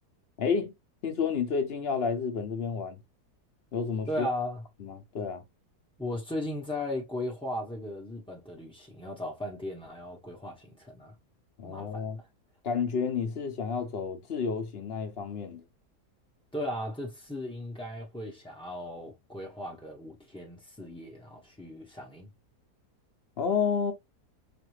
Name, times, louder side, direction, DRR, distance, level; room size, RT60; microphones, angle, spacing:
voice 1, 0.4-0.7 1.0-3.0 3.7-4.3 4.8-5.4 11.6-12.2 12.6-15.6 23.4-23.9, left 6 dB, 55° left, 0.6 m, -30 dB
voice 2, 4.1-4.6 6.0-11.1 11.6-12.3 16.5-22.3, left 1 dB, 5° left, 0.4 m, -37 dB
5.0 x 2.6 x 3.1 m
omnidirectional pair, 1.7 m